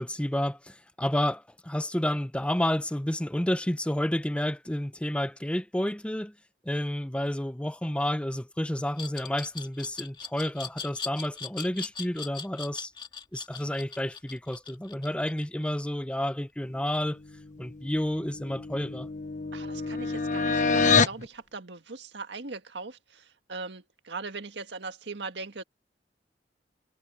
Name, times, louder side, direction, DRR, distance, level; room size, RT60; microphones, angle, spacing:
voice 1, 0.0-6.4 6.6-12.9 13.3-17.2 17.6-19.1, left 1 dB, 5° left, 0.7 m, -30 dB
Glass, 9.0-15.8, left 5 dB, 25° left, 2.1 m, -39 dB
sound 1, 18.0-21.2, left 4 dB, 45° left, 1.3 m, -26 dB
voice 2, 19.5-25.6, right 4 dB, 80° right, 1.7 m, -40 dB
head